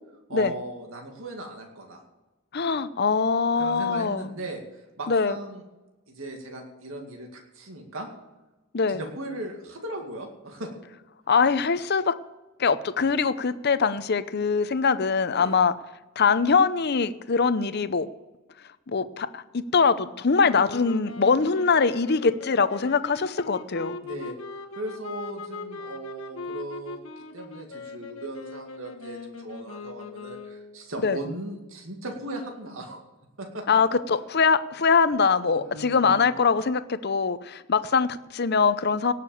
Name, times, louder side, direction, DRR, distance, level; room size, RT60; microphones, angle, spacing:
voice 1, 0.3-2.0 3.6-5.6 6.1-8.1 8.9-10.7 15.3-15.5 24.0-24.4 24.8-27.0 27.3-33.0 33.4-33.8 35.6-36.4, right 1 dB, 85° right, 2 dB, 2.2 m, -38 dB
voice 2, 2.5-4.3 5.1-5.4 8.7-9.0 11.3-12.2 12.6-15.7 16.2-18.1 18.9-24.0 31.0-31.2 33.7-39.1, left 5 dB, 50° left, 13 dB, 0.7 m, -23 dB
sound 1, 20.4-30.8, left 3 dB, 85° left, 1.3 m, -40 dB
18.0 x 6.8 x 7.0 m, 1.1 s
head